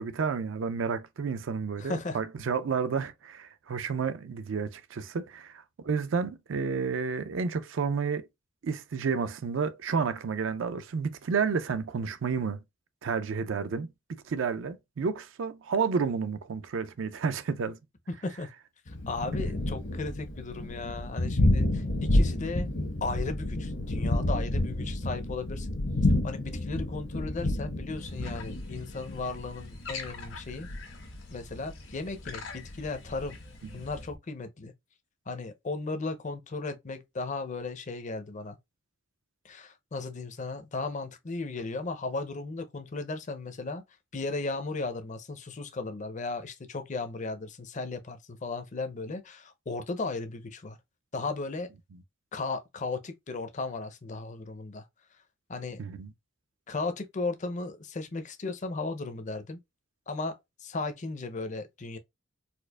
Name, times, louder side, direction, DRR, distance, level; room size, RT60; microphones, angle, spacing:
voice 1, 0.0-5.5 5.8-8.3 8.6-12.6 13.0-13.9 14.3-17.8 33.8-33.9 55.8-56.1, right 5 dB, 65° right, 0.4 m, -31 dB
voice 2, 1.8-2.2 18.2-18.5 18.9-22.7 23.0-25.8 26.2-30.7 31.3-33.4 33.7-34.7 35.3-38.6 39.4-43.8 44.1-50.8 51.1-51.7 52.3-54.9 55.5-55.8 56.7-59.6 60.1-62.0, left 3 dB, 35° left, 0.5 m, -36 dB
Thunder, 18.9-34.2, left 1 dB, 65° left, 0.9 m, -30 dB
sound 1, 28.0-34.1, left 5 dB, 80° left, 1.6 m, -46 dB
4.3 x 2.4 x 2.3 m
head